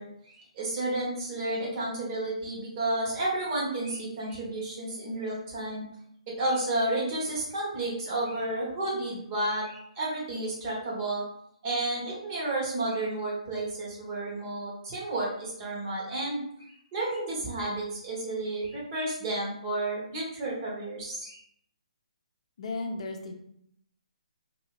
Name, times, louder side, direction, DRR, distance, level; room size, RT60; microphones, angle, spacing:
voice 1, 0.0-5.8 6.3-11.2 11.6-21.4, right 2 dB, 30° right, -5 dB, 1.2 m, -31 dB
voice 2, 22.6-23.3, left 2 dB, 55° left, 3 dB, 0.6 m, -34 dB
2.7 x 2.6 x 3.0 m, 0.71 s
hypercardioid pair, 145°, 4 cm